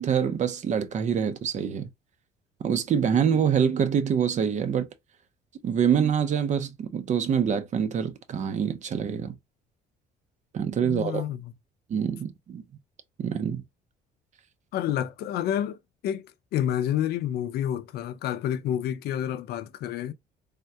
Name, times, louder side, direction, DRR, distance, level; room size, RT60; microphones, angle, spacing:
voice 1, 0.0-1.9 2.6-4.9 5.6-9.4 10.5-11.2 11.9-12.6 13.2-13.6, right 7 dB, 45° right, 0.6 m, -25 dB
voice 2, 10.8-11.5 14.7-20.1, left 10 dB, 70° left, 0.5 m, -29 dB
3.5 x 2.2 x 2.7 m
cardioid pair, 110°, 17 cm